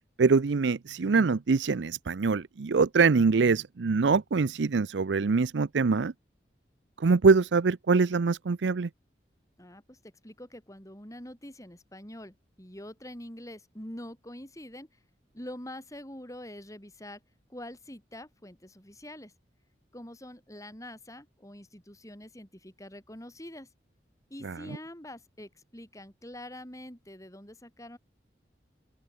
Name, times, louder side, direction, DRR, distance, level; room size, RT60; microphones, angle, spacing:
voice 1, 0.2-6.1 7.0-8.9 24.4-24.8, right 4 dB, 80° right, 0.5 m, -24 dB
voice 2, 9.6-14.9 15.3-17.2 17.5-19.3 19.9-23.7 24.3-28.0, left 1 dB, 20° left, 7.4 m, -45 dB
open air
head